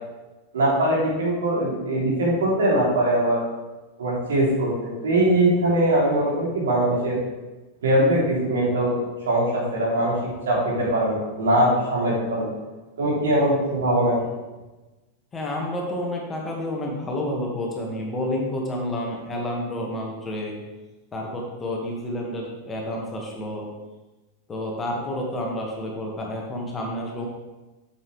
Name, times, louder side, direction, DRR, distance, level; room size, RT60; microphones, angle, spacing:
voice 1, 0.5-3.4 4.0-7.2 7.8-9.0 9.2-10.1 10.4-12.5 13.0-14.2, right 1 dB, 65° right, -4 dB, 2.9 m, -21 dB
voice 2, 15.3-20.6 21.1-23.7 24.5-27.3, left 1 dB, 20° left, -1 dB, 1.6 m, -29 dB
8.3 x 7.1 x 3.2 m, 1.1 s
figure-of-eight pair, 90°, 0 cm